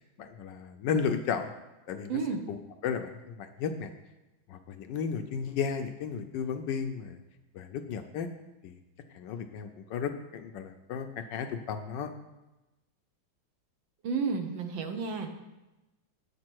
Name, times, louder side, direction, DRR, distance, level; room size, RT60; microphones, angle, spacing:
voice 1, 0.2-1.5 1.9-2.2 2.5-2.6 2.8-3.9 4.5-7.2 7.5-8.3 8.6-8.8 9.1-12.1, left 6 dB, 75° left, 7 dB, 1.1 m, -34 dB
voice 2, 2.1-2.4 14.0-15.3, right 5 dB, 70° right, 5 dB, 1.6 m, -31 dB
8.4 x 6.7 x 4.5 m, 1.0 s
omnidirectional pair, 2.2 m